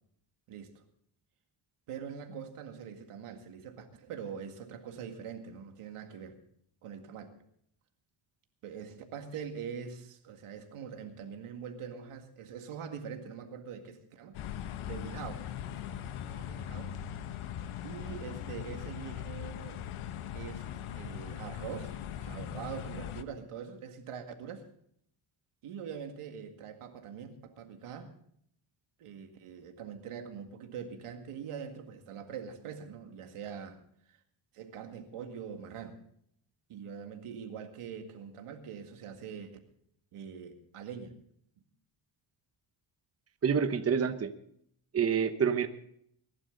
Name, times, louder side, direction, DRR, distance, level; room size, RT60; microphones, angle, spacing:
voice 1, 0.5-0.8 1.9-6.4 6.8-7.3 8.6-14.4 14.9-15.4 15.9-17.0 17.8-19.8 20.3-20.7 20.9-24.6 25.6-28.1 29.0-33.8 34.1-34.2 34.5-36.0 36.7-39.6 40.1-41.2, right 7 dB, 90° right, 5 dB, 2.1 m, -43 dB
sound 1, 14.3-23.2, left 10 dB, 75° left, 1.0 m, -40 dB
voice 2, 43.4-44.3 44.9-45.7, right 7 dB, 30° right, 9 dB, 1.0 m, -27 dB
22.0 x 11.5 x 3.9 m, 0.68 s
cardioid pair, 120°, 50 cm